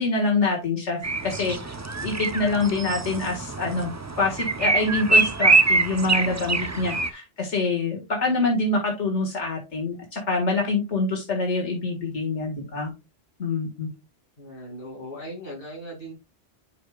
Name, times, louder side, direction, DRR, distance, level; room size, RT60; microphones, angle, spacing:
voice 1, 0.0-1.7 2.0-12.9 13.4-13.9, left 3 dB, 85° left, 2.1 m, -26 dB
sound 1, 1.0-7.1, right 3 dB, 25° right, 0.4 m, -24 dB
voice 2, 14.4-16.1, equal, 50° left, 2.8 m, -38 dB
11.0 x 5.0 x 2.3 m
omnidirectional pair, 1.2 m